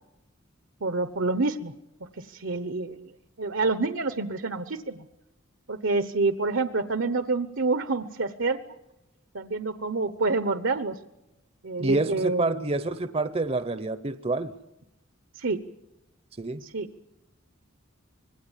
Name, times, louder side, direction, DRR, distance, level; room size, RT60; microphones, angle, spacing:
voice 1, 0.8-1.7 2.2-3.1 3.4-5.0 5.7-8.6 9.3-11.0 11.6-12.5 15.3-15.6 16.6-16.9, right 3 dB, 70° right, 11 dB, 1.1 m, -27 dB
voice 2, 11.8-14.5 16.4-16.6, right 2 dB, 30° right, 12 dB, 0.7 m, -28 dB
25.5 x 20.5 x 7.4 m, 0.93 s
head